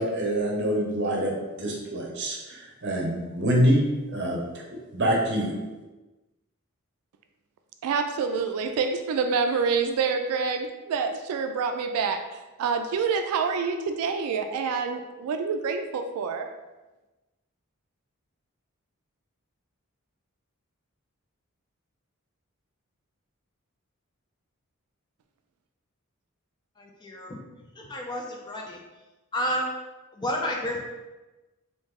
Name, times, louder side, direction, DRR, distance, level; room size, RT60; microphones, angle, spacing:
voice 1, 0.0-4.6 4.9-5.6, equal, 50° right, -1 dB, 0.8 m, -26 dB
voice 2, 7.8-16.5, right 5 dB, 85° right, 9 dB, 0.3 m, -27 dB
voice 3, 27.9-28.8 29.3-29.6 30.2-30.8, equal, 20° left, -1 dB, 0.4 m, -29 dB
3.0 x 2.7 x 3.6 m, 1.1 s
head